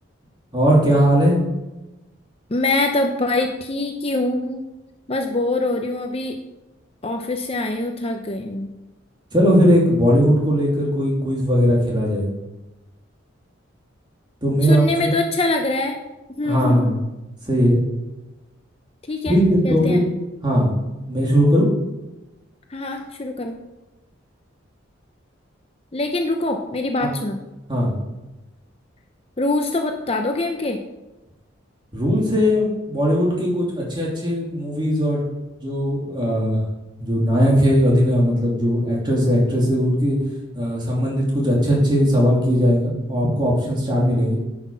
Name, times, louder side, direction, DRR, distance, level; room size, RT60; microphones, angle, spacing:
voice 1, 0.5-1.4 9.3-12.3 14.4-15.1 16.4-17.0 17.4-17.8 19.2-20.1 20.4-20.8 21.1-21.7 27.0-27.1 27.7-28.0 31.9-35.2 35.6-36.6 37.0-40.2 40.5-44.4, equal, 25° right, -3 dB, 2.8 m, -19 dB
voice 2, 2.5-4.6 5.1-6.4 7.0-8.7 14.6-16.0 16.4-16.9 19.1-19.3 19.6-20.0 22.7-23.5 25.9-27.4 29.4-30.8, left 2 dB, 30° left, 4 dB, 0.7 m, -24 dB
9.8 x 6.2 x 5.7 m, 1.0 s
head